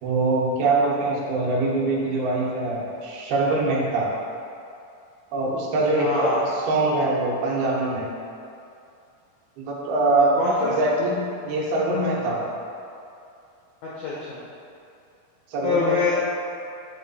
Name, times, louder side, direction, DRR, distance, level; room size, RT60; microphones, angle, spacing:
voice 1, 0.0-4.1 5.3-8.1 9.6-12.5 15.5-16.0, right 2 dB, 75° right, -4 dB, 2.7 m, -23 dB
voice 2, 5.9-6.4 10.4-10.8 13.8-14.4 15.6-16.1, left 4 dB, 90° left, -7 dB, 1.6 m, -25 dB
8.5 x 2.9 x 4.0 m, 2.6 s
omnidirectional pair, 4.5 m